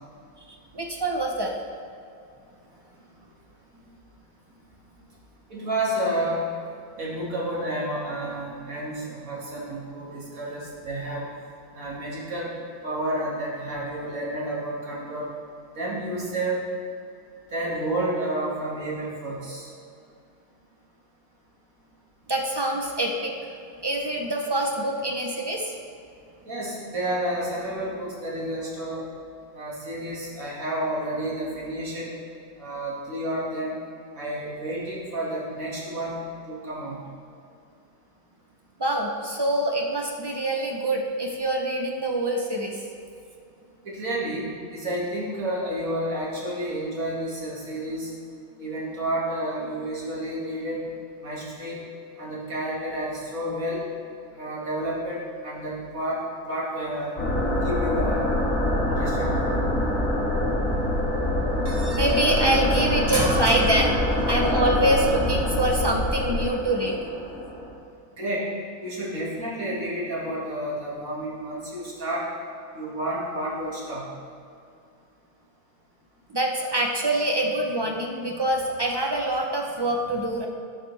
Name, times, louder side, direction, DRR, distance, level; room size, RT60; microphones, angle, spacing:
voice 1, 0.7-1.5 22.3-23.3 23.8-25.7 38.8-42.9 61.6-67.0 76.3-80.5, right 1 dB, 40° right, 0 dB, 0.3 m, -25 dB
voice 2, 5.5-6.4 7.0-11.3 11.7-12.5 12.8-15.3 15.8-16.7 17.5-19.7 26.5-29.0 29.5-32.1 32.6-33.8 34.1-37.0 43.8-48.1 48.6-50.9 51.2-51.8 52.2-53.9 54.3-56.2 56.5-57.1 57.6-58.3 58.9-59.4 68.1-68.5 68.8-72.3 72.7-74.1, right 1 dB, 65° right, -5 dB, 2.3 m, -30 dB
sound 1, 57.2-67.7, left 1 dB, 40° left, 1.5 m, -25 dB
13.0 x 5.7 x 3.3 m, 2.5 s
omnidirectional pair, 1.6 m